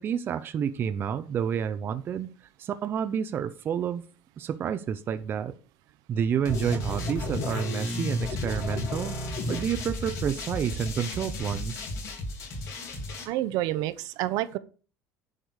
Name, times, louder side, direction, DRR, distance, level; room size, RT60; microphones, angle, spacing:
voice 1, 0.0-2.3 2.6-4.0 4.4-5.6 6.1-9.2 9.5-11.9, right 8 dB, 30° right, 0.6 m, -29 dB
sound 1, 6.4-13.2, left 1 dB, 45° left, 3.2 m, -33 dB
voice 2, 13.3-14.6, right 15 dB, 65° right, 0.8 m, -28 dB
10.0 x 5.2 x 6.3 m
cardioid pair, 160°, 7 cm